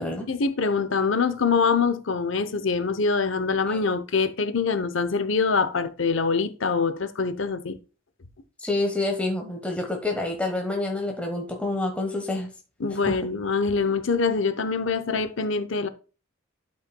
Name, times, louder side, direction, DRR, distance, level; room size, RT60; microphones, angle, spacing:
voice 1, 0.3-7.8 12.8-15.9, left 4 dB, 65° left, 0.8 m, -24 dB
voice 2, 8.6-12.5 13.0-13.2, left 2 dB, 5° left, 1.2 m, -28 dB
12.0 x 5.5 x 2.3 m
head